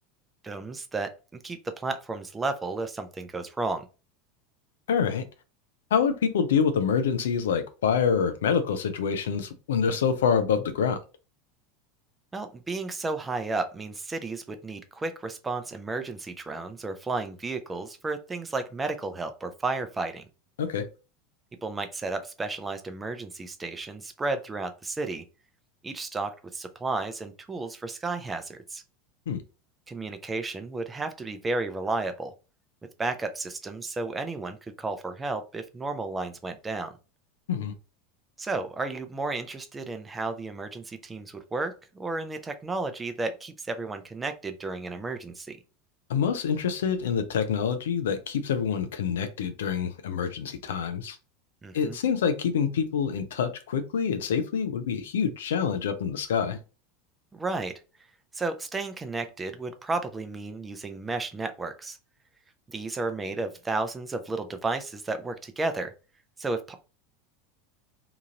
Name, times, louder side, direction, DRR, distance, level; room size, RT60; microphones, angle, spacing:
voice 1, 0.4-1.1 1.4-3.9 12.3-20.3 21.6-25.2 25.8-28.8 29.9-32.3 33.0-36.9 38.4-45.6 51.6-52.0 57.3-57.8 58.3-62.0 62.7-65.9 66.4-66.7, right 3 dB, 20° right, 8 dB, 0.5 m, -33 dB
voice 2, 4.9-5.2 5.9-11.0 20.6-20.9 29.3-29.4 37.5-37.7 46.1-51.2 51.7-56.6, left 7 dB, 75° left, 9 dB, 0.4 m, -26 dB
2.9 x 2.4 x 2.8 m, 0.32 s
hypercardioid pair, 85°, 0 cm